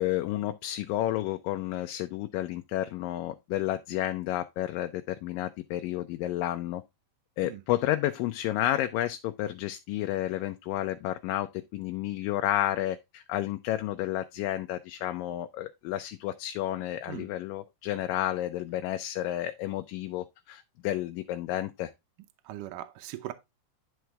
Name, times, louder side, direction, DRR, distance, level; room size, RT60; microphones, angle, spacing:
voice 1, 0.0-6.8 7.4-21.9, left 14 dB, 80° left, 2.2 m, -31 dB
voice 2, 22.4-23.3, right 14 dB, 75° right, 2.1 m, -39 dB
10.5 x 4.6 x 3.4 m
omnidirectional pair, 4.0 m